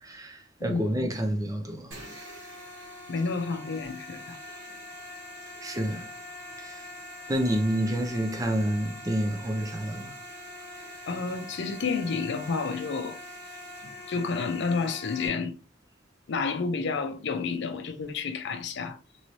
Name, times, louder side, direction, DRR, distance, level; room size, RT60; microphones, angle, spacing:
voice 1, 0.0-2.0 5.6-6.1 6.6-6.8 7.3-10.1, right 1 dB, 20° right, 0.5 m, -29 dB
voice 2, 0.6-1.1 3.1-4.4 11.1-13.2 14.1-15.5 16.3-19.0, left 4 dB, 65° left, 0.5 m, -30 dB
sound 1, 1.9-15.3, left 1 dB, 75° right, 1.6 m, -43 dB
3.1 x 3.0 x 2.7 m
head